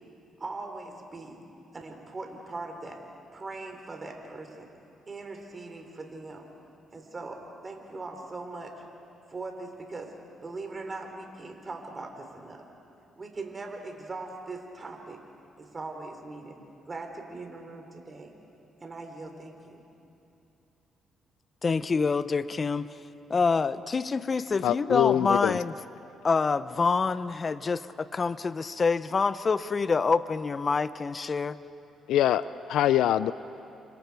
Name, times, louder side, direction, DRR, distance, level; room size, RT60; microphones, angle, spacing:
voice 1, 0.4-1.4 1.7-3.0 3.3-4.7 5.1-6.4 6.9-8.7 9.3-10.1 10.4-12.6 13.2-15.2 15.6-16.6 16.9-18.3 18.8-19.8, right 3 dB, 30° right, 3 dB, 3.3 m, -40 dB
voice 2, 21.6-22.9 23.3-25.7 26.2-31.6, left 4 dB, 35° left, 14 dB, 0.7 m, -26 dB
voice 3, 24.6-25.6 32.1-33.3, left 12 dB, 80° left, 15 dB, 0.4 m, -24 dB
29.5 x 25.5 x 4.7 m, 2.8 s
cardioid pair, 90°, 0 cm